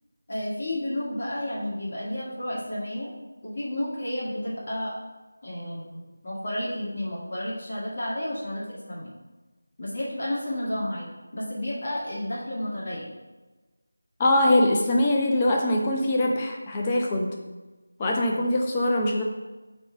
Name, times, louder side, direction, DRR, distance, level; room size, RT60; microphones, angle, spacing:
voice 1, 0.3-3.1 3.4-5.0 5.4-9.1 9.8-13.1, left 1 dB, 40° left, -6 dB, 1.9 m, -31 dB
voice 2, 14.2-17.4 18.0-19.2, left 1 dB, 15° left, 0 dB, 0.8 m, -23 dB
8.8 x 3.2 x 5.8 m, 1.2 s
figure-of-eight pair, 165°, 0 cm